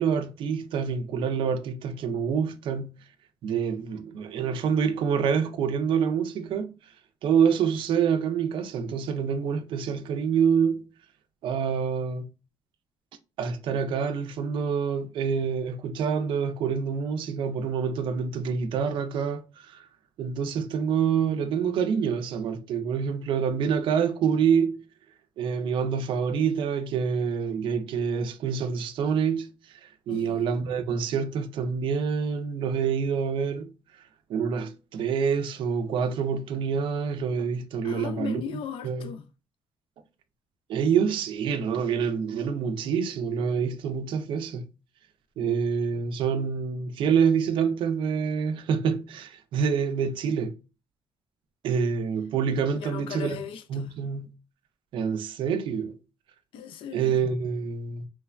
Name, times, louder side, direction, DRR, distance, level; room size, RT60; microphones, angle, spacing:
voice 1, 0.0-2.9 3.4-6.8 7.2-10.9 11.4-12.3 13.4-19.9 20.2-24.8 25.4-33.7 34.3-38.4 38.8-39.1 40.7-44.6 45.4-50.6 51.6-53.4 53.7-54.3 54.9-56.0 56.9-58.1, right 6 dB, 65° right, 0.4 m, -27 dB
voice 2, 30.1-30.4 37.8-39.3 52.7-53.9 56.5-57.2, left 7 dB, 75° left, 0.4 m, -37 dB
3.1 x 2.1 x 2.3 m
cardioid pair, 170°, 9 cm